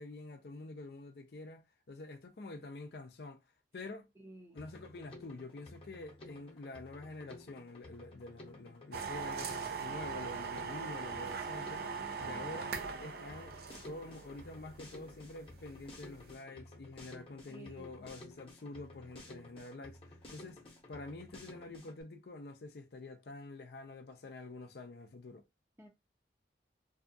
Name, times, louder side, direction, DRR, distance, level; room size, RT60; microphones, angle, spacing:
voice 1, 0.0-3.4 3.7-4.1 4.5-11.9 12.2-13.6 13.8-20.6 20.9-25.5, left 2 dB, 60° left, 0.5 m, -47 dB
voice 2, 4.2-4.6 12.3-12.6 17.5-17.9 25.8-25.9, right 1 dB, 15° right, 0.6 m, -53 dB
Drum kit, 4.6-22.0, left 1 dB, 30° left, 0.8 m, -54 dB
sound 1, 8.9-16.3, right 5 dB, 60° right, 0.5 m, -41 dB
2.6 x 2.3 x 2.6 m
head